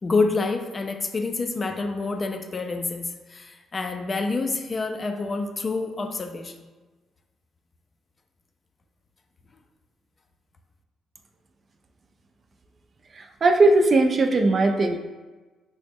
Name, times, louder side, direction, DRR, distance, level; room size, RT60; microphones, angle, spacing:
voice 1, 0.0-6.6, left 3 dB, 35° left, 5 dB, 0.3 m, -27 dB
voice 2, 13.1-15.0, right 2 dB, 40° right, 5 dB, 0.3 m, -19 dB
3.7 x 2.1 x 3.5 m, 1.2 s
cardioid pair, 90°, 0 cm